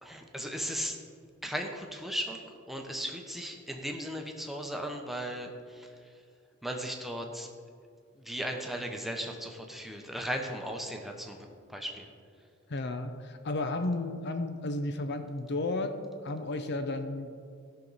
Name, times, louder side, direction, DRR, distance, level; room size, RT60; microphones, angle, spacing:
voice 1, 0.0-1.0 1.4-6.1 6.6-7.5 8.2-12.1, equal, ahead, 2 dB, 0.9 m, -37 dB
voice 2, 12.7-17.4, left 2 dB, 55° left, 8 dB, 0.6 m, -33 dB
16.5 x 6.0 x 4.1 m, 2.2 s
head